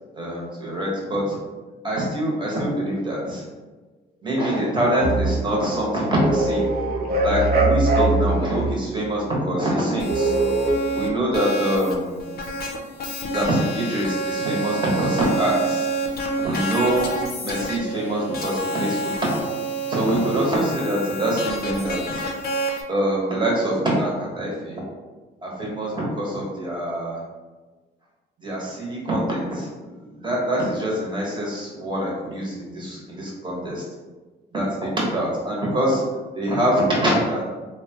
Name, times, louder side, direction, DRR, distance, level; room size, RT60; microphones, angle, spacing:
voice 1, 0.1-1.4 1.8-3.4 4.2-6.7 7.2-10.3 10.9-12.2 13.3-15.9 16.4-17.1 17.4-19.5 19.9-22.3 22.9-24.8 25.4-27.2 28.4-33.8 34.5-36.0 36.3-37.4, right 1 dB, 25° right, -4 dB, 1.0 m, -24 dB
sound 1, 5.0-5.4 6.1-8.7 10.1-10.7, right 2 dB, 50° right, 0.6 m, -21 dB
sound 2, 10.0-22.8, right 2 dB, 50° left, 0.5 m, -28 dB
2.9 x 2.2 x 2.8 m, 1.3 s
cardioid pair, 90°, 20 cm